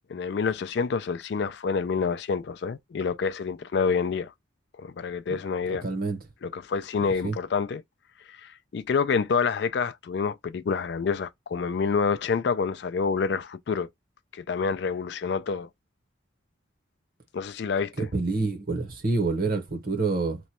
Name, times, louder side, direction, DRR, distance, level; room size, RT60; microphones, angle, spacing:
voice 1, 0.1-4.3 4.8-5.8 6.4-7.8 8.3-13.9 14.3-15.7 17.3-17.9, left 5 dB, 55° left, 0.3 m, -27 dB
voice 2, 5.7-6.2 7.2-7.3 18.0-20.4, right 3 dB, 45° right, 0.9 m, -27 dB
3.0 x 2.2 x 4.1 m
head